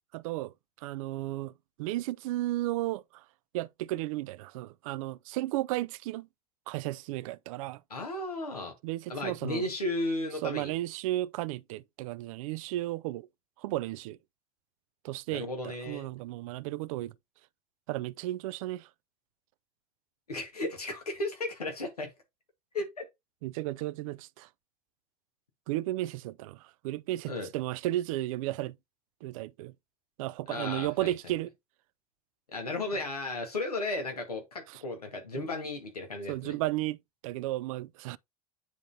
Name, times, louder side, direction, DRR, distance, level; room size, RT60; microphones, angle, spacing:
voice 1, 0.1-0.5 0.8-1.5 1.8-3.0 3.5-6.3 6.7-7.8 8.8-9.6 10.4-13.3 13.6-14.2 15.0-17.1 17.9-18.9 23.4-24.5 25.7-28.8 29.2-29.7 30.2-31.5 34.7-34.8 35.3-35.5 36.3-37.0 37.2-38.2, right 16 dB, 65° right, 0.4 m, -34 dB
voice 2, 7.9-8.7 9.1-10.7 15.3-16.1 20.3-22.1 22.7-23.0 27.2-27.5 30.5-31.3 32.5-36.6, left 2 dB, 90° left, 1.6 m, -34 dB
9.2 x 3.8 x 2.7 m
figure-of-eight pair, 75°, 19 cm